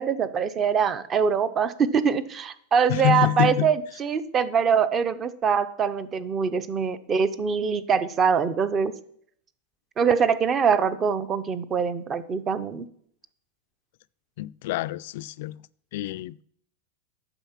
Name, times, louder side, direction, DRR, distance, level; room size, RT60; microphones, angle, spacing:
voice 1, 0.0-8.9 10.0-12.8, right 6 dB, 20° right, 0.6 m, -23 dB
voice 2, 2.9-3.7 14.4-15.6 15.9-16.4, left 17 dB, 55° left, 0.3 m, -26 dB
9.0 x 6.5 x 5.8 m
supercardioid pair, 160°, 0 cm